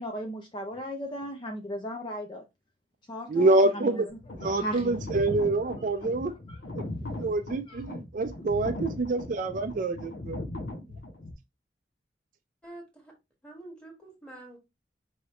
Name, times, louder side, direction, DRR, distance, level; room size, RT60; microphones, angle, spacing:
voice 1, 0.0-2.4 3.1-3.9 4.6-4.9 7.7-7.8, equal, 25° left, 0.4 m, -36 dB
voice 2, 3.3-4.1 4.3-6.3 7.2-10.4, right 2 dB, 45° right, 0.4 m, -26 dB
sound 1, 4.1-11.3, left 1 dB, 70° left, 0.8 m, -38 dB
voice 3, 12.6-13.1 13.4-14.6, right 2 dB, 5° left, 1.4 m, -46 dB
4.8 x 2.9 x 3.0 m
head